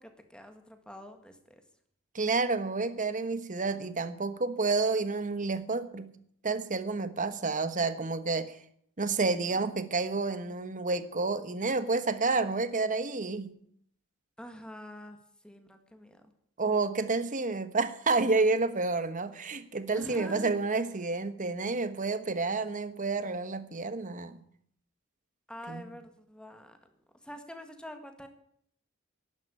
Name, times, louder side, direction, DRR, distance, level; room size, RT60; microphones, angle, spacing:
voice 1, 0.0-1.6 14.4-15.2 15.4-16.2 19.9-20.5 25.5-26.8 27.2-28.3, left 1 dB, 5° left, 6 dB, 1.9 m, -46 dB
voice 2, 2.1-6.1 6.4-8.6 9.0-13.5 16.6-24.4 25.7-25.9, right 3 dB, 40° right, 11 dB, 1.2 m, -30 dB
12.0 x 11.0 x 10.0 m, 0.67 s
head